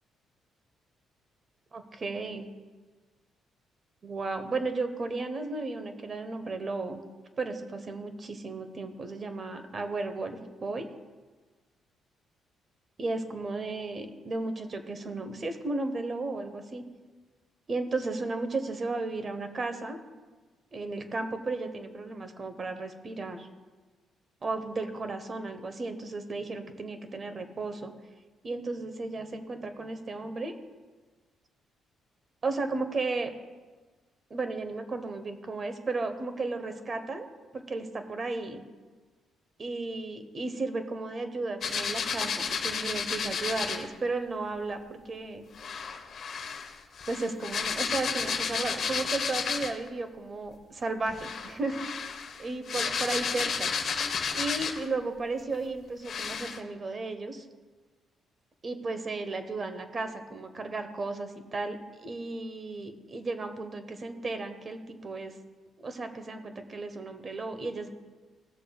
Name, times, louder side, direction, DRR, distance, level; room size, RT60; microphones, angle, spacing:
voice 1, 1.7-2.5 4.0-7.0 7.4-10.9 13.0-16.8 17.7-20.0 20.7-23.5 24.4-27.9 28.4-30.5 32.4-33.3 34.3-37.3 37.5-38.6 39.6-45.5 47.1-51.8 52.4-53.7 54.4-57.4 58.6-65.3 65.8-67.9, right 3 dB, 40° right, 8 dB, 1.0 m, -34 dB
sound 1, 41.6-43.9 45.6-49.9 51.1-55.0 55.5-55.6 56.0-56.6, left 6 dB, 55° left, 0.9 m, -32 dB
17.0 x 6.6 x 2.4 m, 1.4 s
cardioid pair, 90°, 0 cm